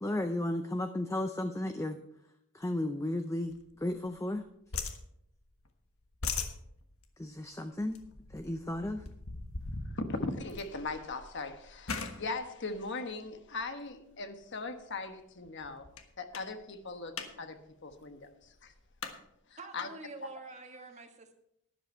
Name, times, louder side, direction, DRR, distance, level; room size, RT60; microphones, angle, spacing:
voice 1, 0.0-2.0 2.5-4.4 7.2-8.0 8.3-9.0, left 1 dB, 15° left, 7 dB, 0.5 m, -34 dB
sound 1, 3.5-4.4 4.7-5.7 6.0-13.8 14.4-14.7 15.1-15.2 15.4-16.0 16.3-16.5 16.8-17.3 17.6-17.7 17.9-19.2, left 4 dB, 70° left, 1.4 m, -41 dB
voice 2, 9.7-15.9 16.2-18.7 19.5-19.9, left 3 dB, 55° left, 8 dB, 1.2 m, -39 dB
voice 3, 19.6-21.3, right 3 dB, 30° right, 5 dB, 1.5 m, -47 dB
12.5 x 11.0 x 4.4 m, 0.76 s
head